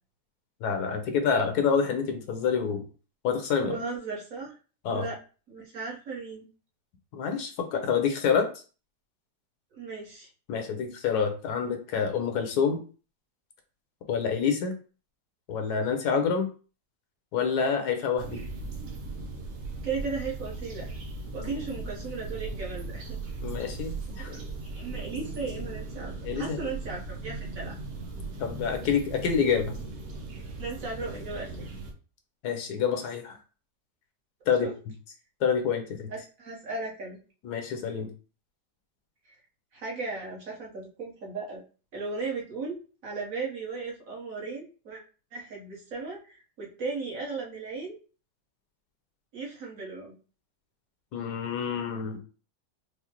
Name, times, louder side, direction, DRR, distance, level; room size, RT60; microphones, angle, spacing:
voice 1, 0.6-2.8 3.2-3.7 4.8-5.0 7.1-8.5 10.5-12.8 14.1-14.7 15.5-16.5 17.3-18.4 21.4-21.5 23.4-24.4 26.2-26.6 28.4-29.7 32.4-33.4 34.5-34.7 35.4-36.1 37.4-38.1 51.1-52.2, left 6 dB, 75° left, 5 dB, 1.2 m, -27 dB
voice 2, 3.6-4.5 4.9-5.2 5.5-6.5 9.8-10.3 19.8-20.9 21.3-23.2 24.3-27.8 30.6-31.6 34.6-34.7 36.1-37.2 39.2-39.3 39.7-41.6 41.9-42.8 43.0-45.0 45.3-48.0 49.3-50.2, right 4 dB, 55° right, -3 dB, 1.3 m, -36 dB
sound 1, 18.2-31.9, right 3 dB, 75° right, 1.2 m, -38 dB
4.8 x 2.0 x 2.8 m, 0.36 s
omnidirectional pair, 1.8 m